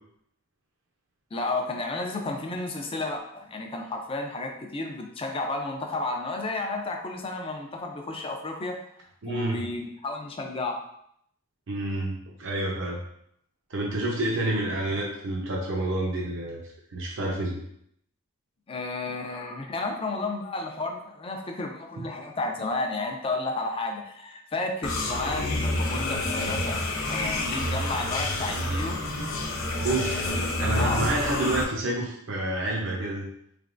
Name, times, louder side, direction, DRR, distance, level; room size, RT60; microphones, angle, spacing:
voice 1, 1.3-8.8 9.2-10.8 18.7-29.0 30.3-31.1, left 2 dB, 25° left, 3 dB, 0.5 m, -32 dB
voice 2, 9.2-9.7 11.7-13.0 13.7-16.6 16.9-17.6 29.8-33.2, right 2 dB, 65° right, -2 dB, 0.7 m, -29 dB
sound 1, 24.8-31.6, left 2 dB, 85° left, 0.7 m, -28 dB
4.0 x 3.3 x 2.5 m, 0.71 s
head